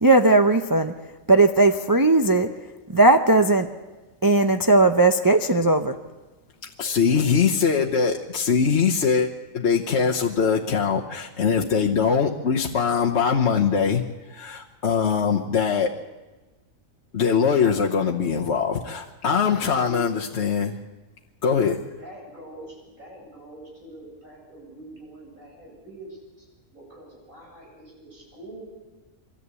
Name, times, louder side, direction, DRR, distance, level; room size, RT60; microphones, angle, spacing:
voice 1, 0.0-0.9 1.3-2.5 2.9-3.7 4.2-5.9, right 2 dB, 20° right, 6 dB, 0.6 m, -17 dB
voice 2, 6.8-9.3 9.5-15.9 17.1-20.8 21.4-21.8, left 6 dB, 55° left, 0 dB, 1.3 m, -22 dB
voice 3, 19.5-20.1 22.0-26.5 26.7-28.6, equal, 75° right, -3 dB, 8.6 m, -44 dB
24.0 x 14.0 x 8.3 m, 1.2 s
omnidirectional pair, 1.4 m